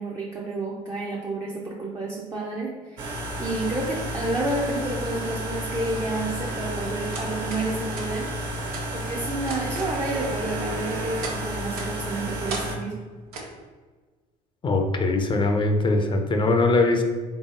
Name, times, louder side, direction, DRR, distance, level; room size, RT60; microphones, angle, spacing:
voice 1, 0.0-3.1 3.4-8.3 8.9-12.9, right 2 dB, 20° right, -3 dB, 0.6 m, -30 dB
sound 1, 3.0-12.7, equal, 55° right, 1.5 m, -32 dB
sound 2, 7.1-7.6 7.9-8.1 8.7-8.8 9.4-11.4 11.7-11.9 12.5-12.7 13.3-13.5, right 3 dB, 75° right, 0.7 m, -34 dB
voice 2, 14.6-17.0, left 2 dB, 25° left, 5 dB, 0.6 m, -21 dB
3.9 x 3.4 x 2.5 m, 1.4 s
figure-of-eight pair, 60°, 19 cm